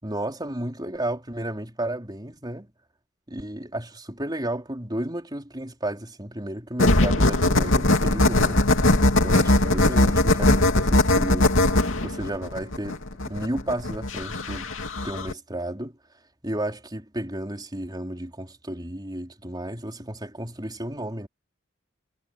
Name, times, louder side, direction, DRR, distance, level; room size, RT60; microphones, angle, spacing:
voice 1, 0.0-2.7 3.3-8.7 9.0-11.5 12.0-14.7 15.0-16.0 16.4-21.3, right 1 dB, 20° right, 4.4 m, -33 dB
sound 1, 6.8-15.3, left 2 dB, 70° left, 2.8 m, -20 dB
head